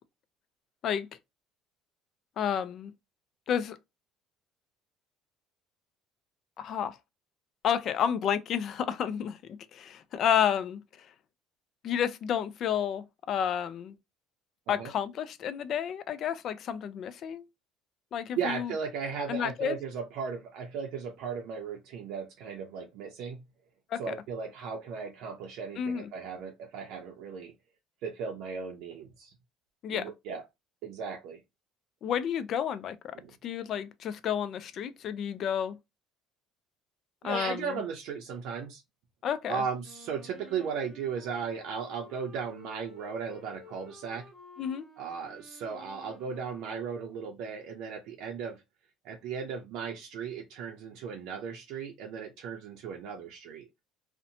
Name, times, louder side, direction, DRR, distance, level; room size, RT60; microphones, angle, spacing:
voice 1, 2.4-2.9 3.5-3.8 6.6-7.0 7.6-10.8 11.8-13.9 14.7-17.5 18.1-18.7 19.3-19.8 23.9-24.1 25.8-26.1 29.8-30.1 32.0-33.1 33.4-35.8 37.2-37.8 39.2-39.6 44.6-44.9, left 9 dB, 55° left, 0.3 m, -31 dB
voice 2, 18.4-23.4 24.0-27.5 28.0-29.3 29.9-30.4 30.8-31.4 33.1-33.3 37.2-38.8 39.5-44.3 45.0-48.6 49.0-53.7, right 6 dB, 75° right, 0.5 m, -36 dB
Wind instrument woodwind instrument, 39.8-47.5, left 2 dB, 10° left, 0.9 m, -53 dB
2.6 x 2.1 x 2.7 m
cardioid pair, 110°, 0 cm